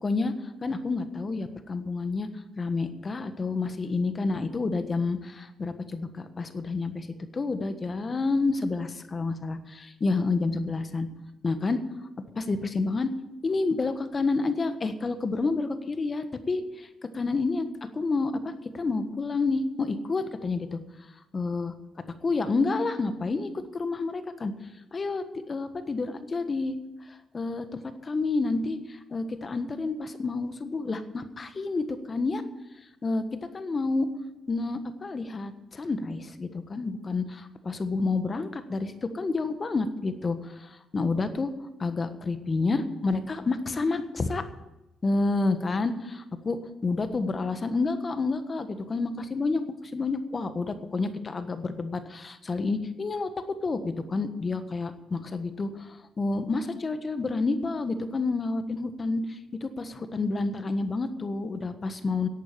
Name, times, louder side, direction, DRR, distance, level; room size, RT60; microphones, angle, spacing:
voice 1, 0.0-0.3 0.6-2.3 2.6-7.1 7.3-11.1 11.4-11.8 12.3-13.1 13.4-16.9 17.1-17.7 17.9-20.8 21.3-21.7 22.2-24.5 24.9-26.8 27.3-32.4 33.0-33.2 33.5-34.1 34.5-41.5 41.8-44.4 45.0-49.6 49.9-53.3 53.6-55.9 56.2-62.3, left 3 dB, 35° left, 9 dB, 1.4 m, -29 dB
11.5 x 8.5 x 9.7 m, 0.97 s
cardioid pair, 90°, 0 cm